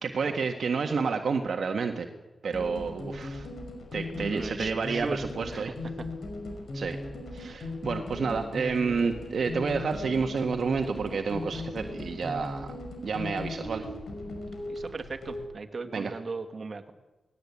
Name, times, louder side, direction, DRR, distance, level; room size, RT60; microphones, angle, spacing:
voice 1, 0.0-2.1 2.4-3.5 3.9-5.7 6.7-7.0 7.3-12.7 13.0-13.9 15.9-16.1, right 5 dB, 70° right, 4 dB, 1.7 m, -30 dB
sound 1, 2.5-15.4, left 2 dB, 75° left, 5.4 m, -38 dB
voice 2, 4.1-5.3 5.5-5.7 14.7-16.9, right 4 dB, 50° right, 6 dB, 2.3 m, -37 dB
19.5 x 18.0 x 8.7 m, 1.1 s
cardioid pair, 70°, 0 cm